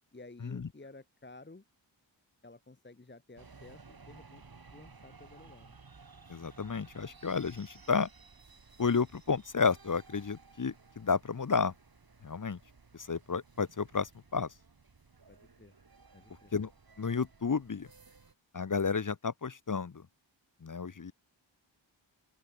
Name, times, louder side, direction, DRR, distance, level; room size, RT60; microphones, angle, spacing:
voice 1, 0.1-1.6 2.4-5.8 15.3-15.7 16.1-16.5, left 2 dB, 25° left, 1.4 m, -53 dB
sound 1, 3.4-18.3, right 4 dB, 50° right, 2.9 m, -57 dB
voice 2, 6.3-8.1 8.8-11.7 12.2-12.6 12.9-14.5 16.5-16.7 17.0-17.9 18.5-20.0 20.6-21.1, left 5 dB, 40° left, 1.0 m, -32 dB
open air
wide cardioid pair, 90°, 46 cm